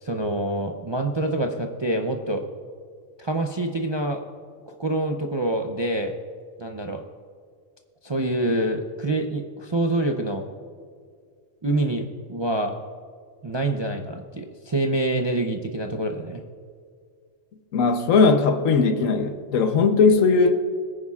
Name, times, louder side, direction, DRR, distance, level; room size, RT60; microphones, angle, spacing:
voice 1, 0.0-2.4 3.2-4.2 4.7-6.1 6.6-7.0 8.0-10.5 11.6-12.8 13.4-16.4, right 1 dB, 35° right, 3 dB, 0.4 m, -26 dB
voice 2, 17.7-20.5, left 4 dB, 80° left, 7 dB, 1.3 m, -18 dB
21.5 x 9.6 x 2.4 m, 2.1 s
omnidirectional pair, 1.3 m